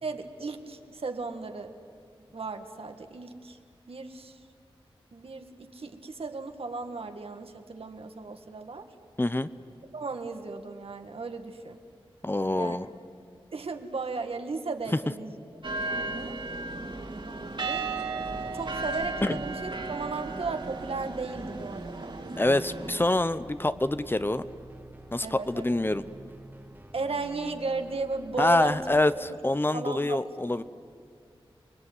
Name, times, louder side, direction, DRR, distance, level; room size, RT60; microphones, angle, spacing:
voice 1, 0.0-1.7 2.3-3.6 3.9-4.4 5.1-8.9 9.9-11.8 12.6-12.8 13.5-15.4 15.8-16.4 17.6-17.9 18.2-22.2 25.2-25.6 26.9-28.8 29.7-30.3, right 4 dB, 75° right, 6 dB, 1.9 m, -35 dB
voice 2, 9.2-9.5 12.2-12.9 19.2-19.4 22.4-24.4 25.1-26.0 28.4-30.6, left 1 dB, 20° left, 14 dB, 0.7 m, -26 dB
sound 1, 15.6-23.0, right 3 dB, 55° right, 2.6 m, -35 dB
sound 2, 18.1-29.0, right 1 dB, 20° right, 2.0 m, -48 dB
29.0 x 21.0 x 9.6 m, 2.2 s
wide cardioid pair, 85°, 10 cm